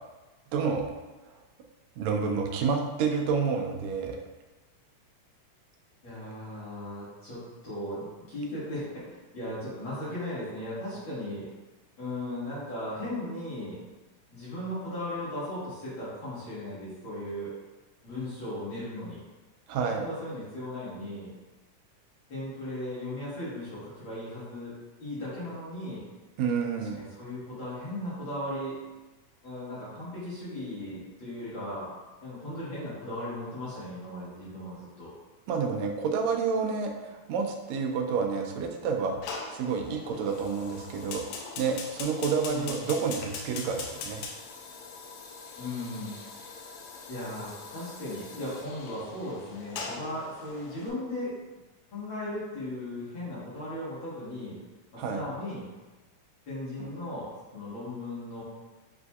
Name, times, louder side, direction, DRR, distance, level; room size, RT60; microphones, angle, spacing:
voice 1, 0.5-0.9 1.3-1.4 2.0-4.2 19.7-20.0 26.4-27.0 35.5-41.2 41.6-44.2 55.0-55.2, right 5 dB, 85° right, 1 dB, 1.6 m, -29 dB
voice 2, 6.0-8.8 9.1-11.5 12.0-13.8 14.3-17.5 18.0-19.2 19.8-21.3 22.3-24.7 25.0-26.1 26.7-28.8 29.4-31.9 32.2-35.1 42.4-42.8 45.6-46.5 47.1-51.3 51.9-54.6 54.9-55.6 56.5-58.4, left 1 dB, 50° left, -10 dB, 1.7 m, -37 dB
Fire, 39.2-50.9, left 4 dB, 80° left, 1.6 m, -42 dB
7.1 x 2.6 x 2.3 m, 1.2 s
omnidirectional pair, 3.7 m